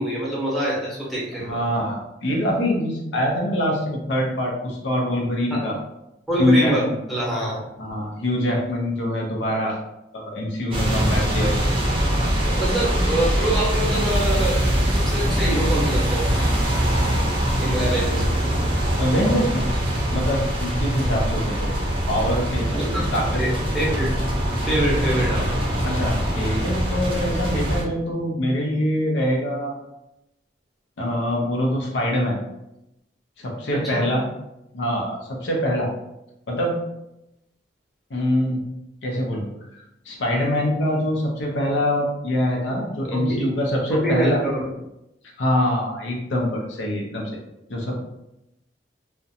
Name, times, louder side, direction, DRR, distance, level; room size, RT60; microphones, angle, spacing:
voice 1, 0.0-1.6 5.5-5.7 6.3-6.8 7.1-7.6 12.5-14.6 14.9-16.4 17.6-18.3 22.7-23.1 23.4-24.2 24.7-25.6 33.7-34.1 43.1-43.5 43.9-44.7, right 1 dB, ahead, -7 dB, 0.8 m, -25 dB
voice 2, 1.4-5.8 6.4-6.9 7.8-9.8 10.1-11.6 12.4-12.6 17.8-17.9 19.0-19.7 20.1-21.7 22.1-23.4 25.8-29.8 31.0-32.4 33.4-34.2 34.7-35.9 36.5-36.8 38.1-38.6 39.0-39.5 40.1-44.4 45.4-47.4 47.7-48.0, left 1 dB, 90° left, -1 dB, 0.6 m, -24 dB
sound 1, 10.7-27.8, equal, 30° right, 0.5 m, -23 dB
2.4 x 2.1 x 2.7 m, 0.88 s
head